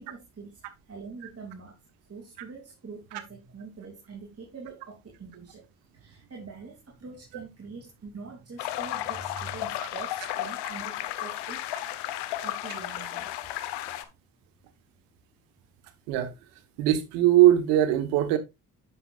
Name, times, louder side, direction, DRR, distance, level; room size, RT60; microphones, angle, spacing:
voice 1, 0.0-1.8 2.1-5.7 5.9-12.1 12.4-13.3, right 4 dB, 35° right, 2.9 m, -44 dB
sound 1, 8.6-14.0, left 13 dB, 80° left, 1.1 m, -33 dB
voice 2, 16.8-18.4, right 13 dB, 85° right, 1.4 m, -20 dB
9.8 x 6.7 x 2.4 m
supercardioid pair, 55°, 41 cm